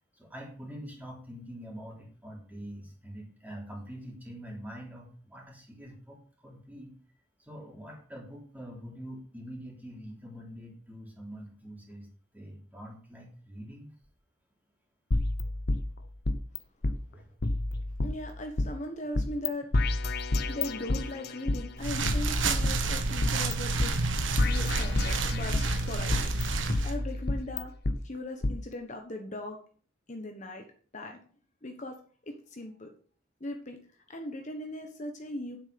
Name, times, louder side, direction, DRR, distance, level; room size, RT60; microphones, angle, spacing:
voice 1, 0.1-6.2 6.4-6.9 7.4-12.1 12.3-13.9 17.1-17.2, equal, 10° right, -1 dB, 3.3 m, -44 dB
sound 1, 15.1-16.6 16.8-16.9 17.4-18.7 19.1-19.5 19.7-21.6 22.0-23.5 23.8-23.9 24.4-25.7 26.1-28.0 28.4-28.5, left 2 dB, 55° left, 0.9 m, -29 dB
voice 2, 18.0-19.7 20.5-24.0 24.4-25.6 25.9-26.3 26.8-27.7 28.0-29.6 30.1-30.6 30.9-31.2 31.6-32.0 32.2-32.9 33.4-33.8 34.1-35.6, left 1 dB, 40° left, 4 dB, 1.2 m, -39 dB
sound 2, 21.8-26.9, right 3 dB, 75° right, 1.4 m, -29 dB
9.8 x 7.9 x 5.2 m, 0.44 s
head